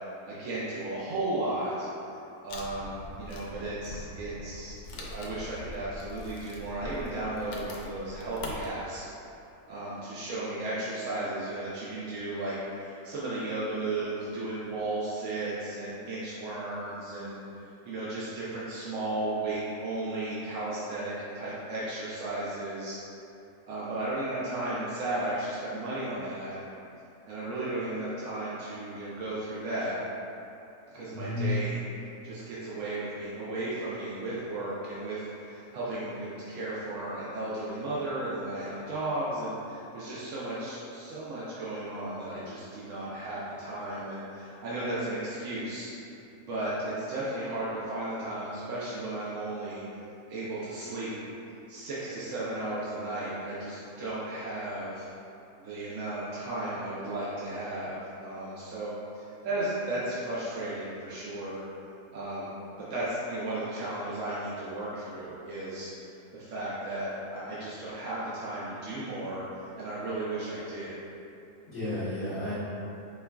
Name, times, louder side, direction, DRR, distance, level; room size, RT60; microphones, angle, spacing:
voice 1, 0.3-1.9 2.4-9.1 9.7-23.0 23.7-26.6 27.3-30.0 30.9-31.8 32.2-45.9 46.5-49.8 50.3-51.2 51.7-55.1 55.6-61.6 62.1-62.5 62.8-65.9 66.3-71.0, right 2 dB, 65° right, -9 dB, 0.9 m, -34 dB
Wood, 2.5-8.7, left 2 dB, 90° left, 1.1 m, -42 dB
voice 2, 31.1-31.6 71.7-72.5, left 2 dB, 50° left, -13 dB, 1.1 m, -31 dB
4.5 x 3.5 x 2.2 m, 2.8 s
omnidirectional pair, 1.6 m